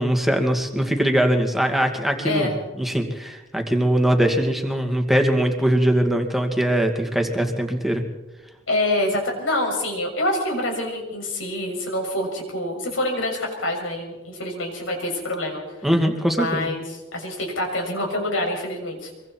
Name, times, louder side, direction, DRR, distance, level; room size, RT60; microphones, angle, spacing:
voice 1, 0.0-2.5 2.8-8.0 15.8-16.7, right 1 dB, ahead, 3 dB, 2.3 m, -21 dB
voice 2, 8.7-15.6 16.4-16.8 17.1-19.1, left 1 dB, 85° left, 1 dB, 6.7 m, -26 dB
25.0 x 23.5 x 4.6 m, 1.1 s
head